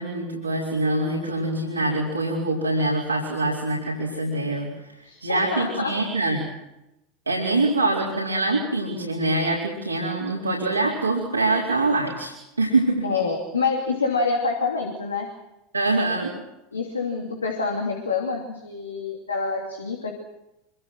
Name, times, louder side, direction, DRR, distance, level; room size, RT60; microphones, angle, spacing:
voice 1, 0.0-4.7 5.2-6.5 7.3-13.1 15.7-16.3, right 2 dB, 85° right, -4 dB, 4.4 m, -24 dB
voice 2, 5.0-6.0 13.0-15.3 16.7-20.1, left 4 dB, 80° left, 2 dB, 2.9 m, -27 dB
26.5 x 24.5 x 6.3 m, 0.91 s
figure-of-eight pair, 80°, 0 cm